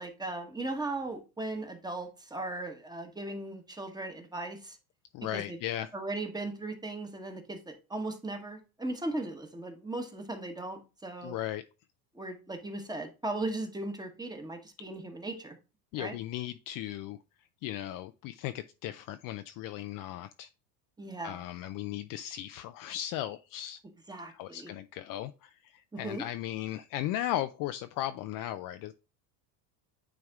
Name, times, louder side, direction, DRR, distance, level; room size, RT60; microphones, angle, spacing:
voice 1, 0.0-4.8 5.3-5.6 5.9-11.3 12.1-15.6 16.0-16.2 21.0-21.4 24.1-24.7 25.9-26.2, right 2 dB, 10° right, 1.2 m, -37 dB
voice 2, 5.1-5.9 11.2-11.6 15.9-17.2 17.6-20.5 21.2-23.8 24.3-28.9, left 13 dB, 45° left, 0.4 m, -36 dB
9.5 x 3.4 x 3.6 m
supercardioid pair, 120°, 47 cm